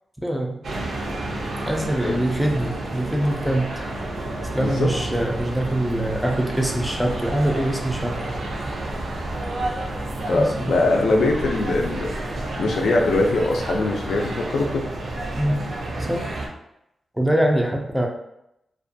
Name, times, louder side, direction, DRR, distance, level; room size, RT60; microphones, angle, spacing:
voice 1, 0.2-0.6 1.7-3.7 4.5-8.1 10.3-11.1 15.4-15.7 16.1-16.3 17.1-18.1, right 1 dB, 5° right, 1 dB, 0.3 m, -24 dB
sound 1, 0.6-16.5, right 1 dB, 70° right, 0.5 m, -30 dB
voice 2, 4.6-4.9 10.3-12.1 12.6-14.9, left 2 dB, 80° left, 1 dB, 0.4 m, -22 dB
2.4 x 2.2 x 2.6 m, 0.82 s
wide cardioid pair, 155°, 0 cm